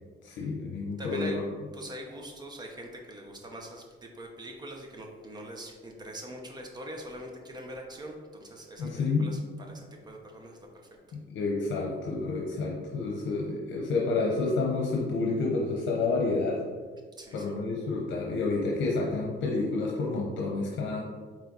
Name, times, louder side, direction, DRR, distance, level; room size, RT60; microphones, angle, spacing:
voice 1, 0.2-1.4 8.8-9.3 11.1-16.6 17.3-21.0, left 3 dB, 80° left, -1 dB, 0.9 m, -29 dB
voice 2, 1.0-1.4 1.7-9.4 9.7-10.9 17.2-17.6, right 1 dB, 20° right, 2 dB, 0.8 m, -43 dB
8.7 x 3.2 x 4.0 m, 1.5 s
cardioid pair, 180°, 19 cm